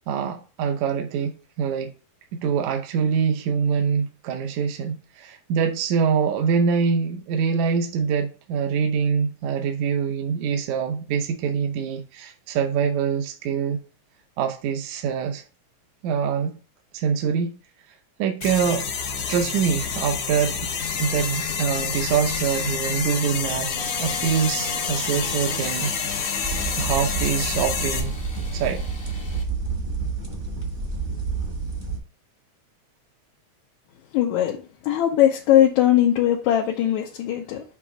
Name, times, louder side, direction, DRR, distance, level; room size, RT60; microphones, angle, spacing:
voice 1, 0.1-1.9 2.3-13.8 14.4-15.4 16.0-16.5 16.9-17.6 18.2-18.9 19.3-20.5 21.0-23.7 24.0-25.9 26.8-28.2 28.5-28.9, right 6 dB, 80° right, 2.1 m, -24 dB
sound 1, 18.4-28.0, left 6 dB, 60° left, 1.9 m, -28 dB
Engine starting / Sawing, 23.8-29.4, left 2 dB, 40° left, 0.8 m, -38 dB
sound 2, 26.4-32.0, right 4 dB, 35° right, 0.9 m, -29 dB
voice 2, 34.1-37.6, left 11 dB, 80° left, 2.2 m, -20 dB
7.1 x 3.0 x 5.8 m
omnidirectional pair, 3.4 m